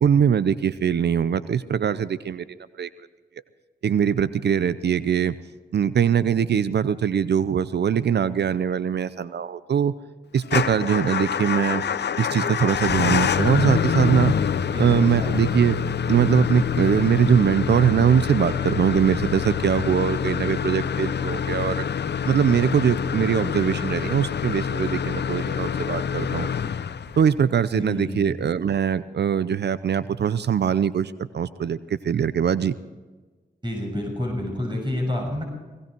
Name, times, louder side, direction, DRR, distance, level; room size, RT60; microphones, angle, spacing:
voice 1, 0.0-2.5 2.8-2.9 3.8-5.4 5.7-9.9 10.3-11.8 12.2-14.3 14.8-15.8 16.1-21.8 22.3-26.5 27.2-32.7, right 8 dB, 60° right, 16 dB, 0.6 m, -22 dB
Motor vehicle (road) / Engine starting / Idling, 10.4-27.4, left 7 dB, 60° left, 0.7 m, -26 dB
voice 2, 14.7-15.4 27.7-28.3 33.6-35.4, left 1 dB, 25° right, 0 dB, 6.5 m, -29 dB
17.5 x 17.5 x 4.5 m, 1.3 s
supercardioid pair, 40°, 20 cm